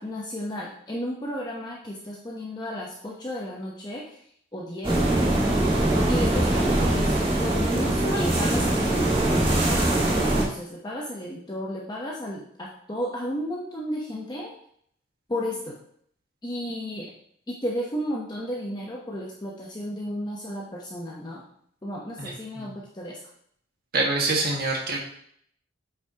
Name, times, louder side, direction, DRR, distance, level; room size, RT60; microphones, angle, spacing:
voice 1, 0.0-4.2 4.5-5.6 6.1-14.5 15.3-15.8 16.4-17.2 17.5-21.4 21.8-23.2, equal, 20° left, -3 dB, 0.8 m, -33 dB
sound 1, 4.8-10.4, right 1 dB, 25° right, 1.6 m, -22 dB
voice 2, 22.2-22.7 23.9-25.0, right 2 dB, 50° right, -1 dB, 1.7 m, -26 dB
8.3 x 5.9 x 2.9 m, 0.65 s
head